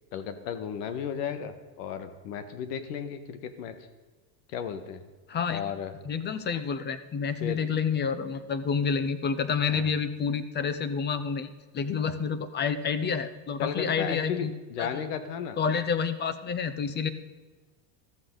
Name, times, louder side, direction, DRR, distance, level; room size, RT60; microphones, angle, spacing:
voice 1, 0.1-3.7 4.5-5.0 5.5-5.9 7.4-7.6 9.7-9.9 13.6-15.6, left 8 dB, 85° left, 9 dB, 1.7 m, -34 dB
voice 2, 5.3-5.6 6.0-14.5 14.8-15.1 15.6-17.1, left 6 dB, 20° left, 12 dB, 0.7 m, -29 dB
14.5 x 13.5 x 4.0 m, 1.3 s
cardioid pair, 150°, 46 cm